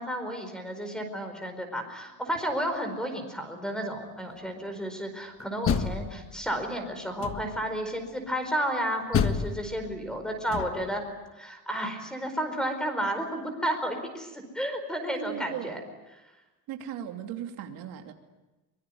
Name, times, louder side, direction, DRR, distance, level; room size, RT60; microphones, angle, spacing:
voice 1, 0.0-11.0 11.3-15.8, equal, ahead, 6 dB, 4.6 m, -32 dB
Door, 5.4-6.6 7.2-7.8 9.1-11.0, left 7 dB, 40° left, 1.5 m, -30 dB
voice 2, 15.1-15.8 16.7-18.1, right 10 dB, 90° right, 4 dB, 2.9 m, -37 dB
24.0 x 23.0 x 9.4 m, 1.1 s
cardioid pair, 160°, 34 cm